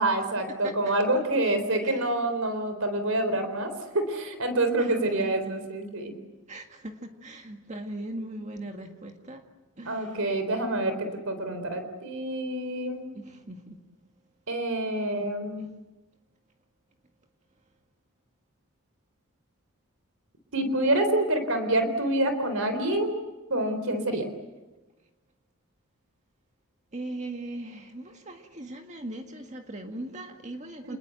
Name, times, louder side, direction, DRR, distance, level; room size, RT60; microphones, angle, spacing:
voice 1, 0.0-6.1 9.9-10.9 11.3-13.1 14.5-15.7 20.5-23.2 23.5-24.3 30.8-31.0, right 1 dB, 70° right, 8 dB, 4.0 m, -27 dB
voice 2, 0.6-1.0 1.8-2.0 4.8-5.5 6.5-9.4 9.8-10.3 10.8-10.9 13.1-13.8 15.1-15.3 15.6-15.7 26.9-31.0, right 1 dB, 35° right, 4 dB, 1.9 m, -39 dB
28.5 x 21.0 x 8.1 m, 1.1 s
head